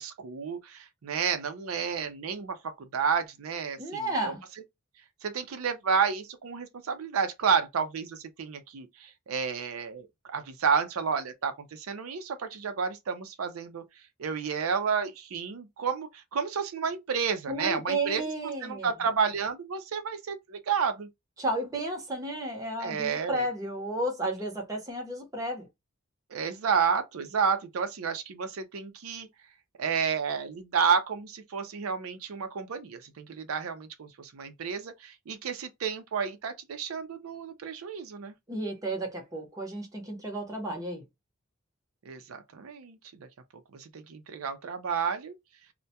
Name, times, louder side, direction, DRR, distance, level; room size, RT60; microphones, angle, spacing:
voice 1, 0.0-4.3 5.2-13.8 14.2-18.3 18.6-21.1 22.8-23.4 26.3-29.3 29.8-38.3 42.1-43.3 43.7-45.3, right 6 dB, 90° right, 0.5 m, -31 dB
voice 2, 3.8-4.4 17.5-18.9 21.4-25.7 38.5-41.0, right 1 dB, 15° right, 0.8 m, -32 dB
2.2 x 2.1 x 2.7 m
head